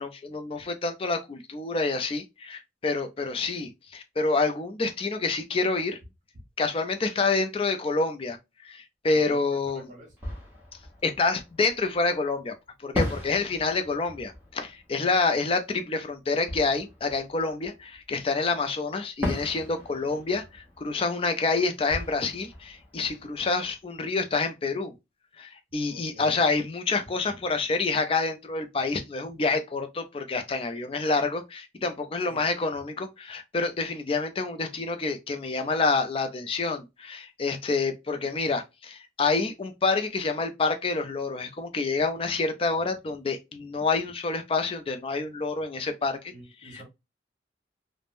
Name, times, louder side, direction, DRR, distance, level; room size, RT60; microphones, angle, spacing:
voice 1, 0.0-6.0 6.6-8.4 8.6-9.9 11.0-12.5 12.8-24.9 25.4-46.3 46.6-46.8, left 3 dB, 30° left, 0.4 m, -28 dB
voice 2, 9.1-10.1 20.1-20.3 23.2-23.3 25.9-26.4 32.3-32.5 46.3-46.8, right 1 dB, 45° right, 1.2 m, -49 dB
Fireworks, 9.6-9.7 10.2-12.1 12.9-18.3 19.2-24.0, left 1 dB, 10° right, 1.0 m, -37 dB
3.4 x 2.0 x 2.5 m
head